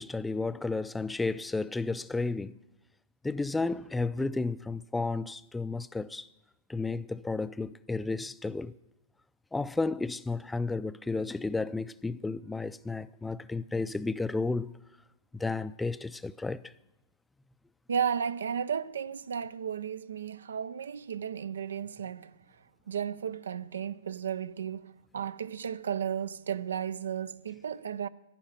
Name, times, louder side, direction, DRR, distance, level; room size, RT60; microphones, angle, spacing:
voice 1, 0.0-2.5 3.2-6.3 6.7-8.7 9.5-14.7 15.3-16.6, left 3 dB, 5° left, 0.4 m, -32 dB
voice 2, 17.9-22.4 22.9-28.1, right 8 dB, 90° right, 0.5 m, -34 dB
11.5 x 10.0 x 7.4 m
hypercardioid pair, 135°, 0 cm